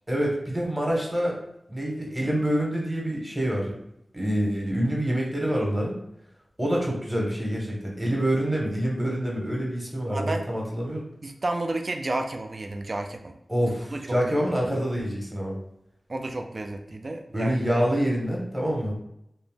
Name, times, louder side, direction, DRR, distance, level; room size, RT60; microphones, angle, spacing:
voice 1, 0.1-1.3 1.7-3.7 4.1-5.9 6.6-11.1 13.5-15.6 17.3-18.9, equal, 15° right, -2 dB, 0.9 m, -26 dB
voice 2, 10.1-10.4 11.2-13.3 13.9-14.2 16.1-17.8, right 2 dB, 55° right, 5 dB, 0.3 m, -31 dB
2.6 x 2.0 x 3.3 m, 0.79 s
cardioid pair, 45°, 0 cm